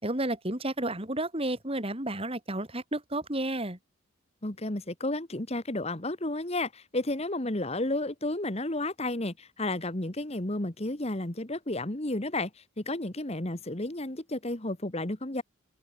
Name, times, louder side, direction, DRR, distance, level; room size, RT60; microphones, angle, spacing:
voice 1, 0.0-3.8, right 1 dB, 25° right, 3.5 m, -31 dB
voice 2, 4.4-15.4, left 2 dB, 30° left, 1.6 m, -32 dB
head